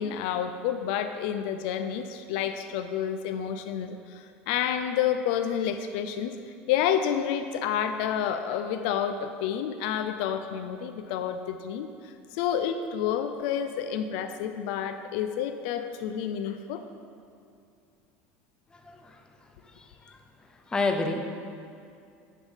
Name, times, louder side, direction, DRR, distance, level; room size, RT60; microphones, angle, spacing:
voice 1, 0.0-6.4 6.7-16.8, left 9 dB, 80° left, 8 dB, 0.4 m, -29 dB
voice 2, 18.7-19.2 19.7-20.2 20.7-21.2, left 3 dB, 15° left, 4 dB, 0.7 m, -30 dB
9.9 x 3.6 x 5.5 m, 2.4 s
supercardioid pair, 130°, 5 cm